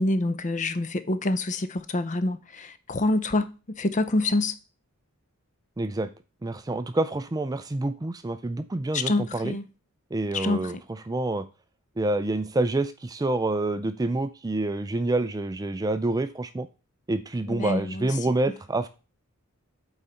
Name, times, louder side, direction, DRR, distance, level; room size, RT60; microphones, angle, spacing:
voice 1, 0.0-3.5 3.8-4.5 8.9-9.7 10.3-10.8 17.5-18.1, left 2 dB, 35° left, 0.6 m, -26 dB
voice 2, 5.8-6.1 6.4-9.6 10.1-11.4 12.0-16.7 17.1-18.9, right 2 dB, 15° right, 0.4 m, -27 dB
8.5 x 4.1 x 4.3 m
head